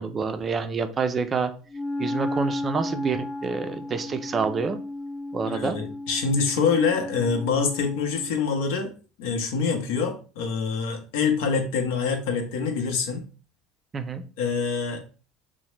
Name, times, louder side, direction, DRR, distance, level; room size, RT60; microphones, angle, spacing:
voice 1, 0.0-1.5 2.0-4.8 5.3-5.8 13.9-14.2, right 5 dB, 25° right, 8 dB, 0.3 m, -27 dB
Wind instrument woodwind instrument, 1.7-8.4, left 1 dB, 40° left, 0.7 m, -33 dB
voice 2, 5.5-8.9 9.2-13.2 14.4-15.0, left 5 dB, 85° left, 4 dB, 0.7 m, -25 dB
2.8 x 2.1 x 3.1 m, 0.37 s
supercardioid pair, 125°, 0 cm